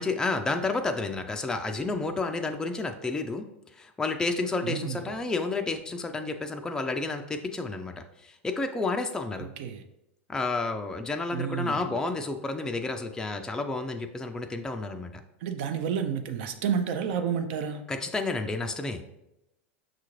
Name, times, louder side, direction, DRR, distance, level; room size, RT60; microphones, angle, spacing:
voice 1, 0.0-3.5 3.7-9.5 10.3-15.2 17.9-19.0, left 3 dB, 10° left, 5 dB, 0.3 m, -31 dB
voice 2, 4.6-5.0 9.4-9.8 11.3-12.0 15.4-17.8, right 7 dB, 65° right, 8 dB, 0.4 m, -30 dB
5.7 x 2.5 x 3.0 m, 0.88 s
hypercardioid pair, 100°, 7 cm